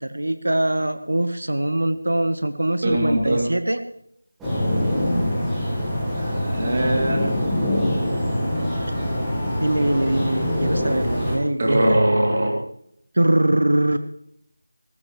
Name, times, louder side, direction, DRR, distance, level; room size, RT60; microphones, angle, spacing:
voice 1, 0.0-3.8 9.6-12.0 13.1-14.0, right 1 dB, 80° right, 10 dB, 1.1 m, -22 dB
voice 2, 2.8-3.5 6.1-7.3 11.6-12.5, right 1 dB, 25° right, -1 dB, 2.7 m, -21 dB
sound 1, 4.4-11.4, left 1 dB, ahead, 1.7 m, -24 dB
20.0 x 14.5 x 3.2 m, 0.72 s
figure-of-eight pair, 180°, 0 cm